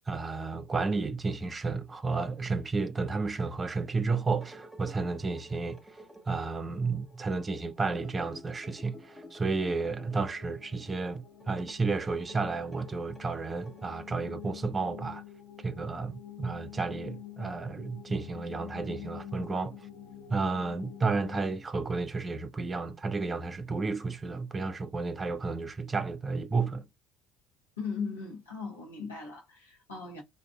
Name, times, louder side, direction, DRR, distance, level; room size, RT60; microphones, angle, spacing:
voice 1, 0.1-5.8 6.3-15.2 15.6-19.8 20.3-26.8, right 3 dB, 25° right, 0.4 m, -32 dB
sound 1, 4.2-15.0, equal, 5° right, 1.0 m, -52 dB
sound 2, 5.9-21.6, left 10 dB, 30° left, 0.8 m, -49 dB
voice 2, 27.8-30.2, left 5 dB, 80° left, 1.1 m, -38 dB
2.5 x 2.5 x 2.2 m
figure-of-eight pair, 60°, 0 cm